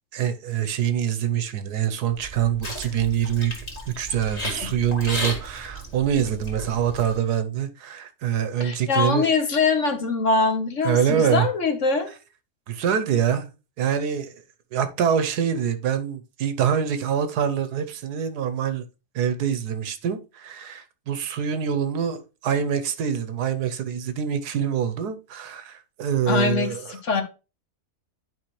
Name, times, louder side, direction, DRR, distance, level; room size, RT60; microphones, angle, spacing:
voice 1, 0.1-3.5 3.9-9.3 10.8-11.5 12.7-13.5 13.8-14.4 14.7-18.9 19.1-26.8, right 8 dB, 80° right, 1.4 m, -25 dB
sound 1, 2.1-7.2, equal, 25° left, 1.8 m, -34 dB
voice 2, 8.6-12.1 26.3-27.2, left 4 dB, 50° left, 1.4 m, -23 dB
10.5 x 4.7 x 3.2 m
omnidirectional pair, 1.7 m